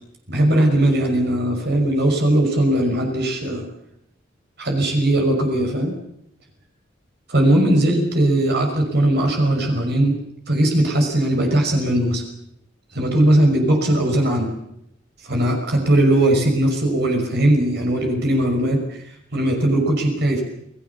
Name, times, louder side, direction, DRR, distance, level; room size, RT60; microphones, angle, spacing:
voice 1, 0.3-3.7 4.6-5.9 7.3-10.2 10.5-12.2 12.9-14.5 15.2-19.0 19.3-20.4, right 1 dB, 60° right, 2 dB, 5.8 m, -19 dB
28.5 x 19.5 x 7.0 m, 0.78 s
head